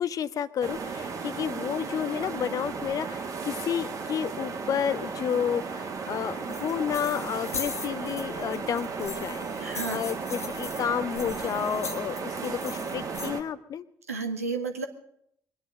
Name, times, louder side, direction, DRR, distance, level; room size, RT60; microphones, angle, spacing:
voice 1, 0.0-13.8, left 8 dB, 50° left, 15 dB, 0.7 m, -31 dB
sound 1, 0.6-13.4, right 5 dB, 45° right, 1.6 m, -35 dB
sound 2, 6.5-13.3, left 4 dB, 85° left, 0.8 m, -40 dB
voice 2, 9.6-10.0 14.1-14.9, right 4 dB, 85° right, 6 dB, 1.0 m, -32 dB
22.5 x 10.0 x 6.3 m, 0.72 s
figure-of-eight pair, 45°, 8 cm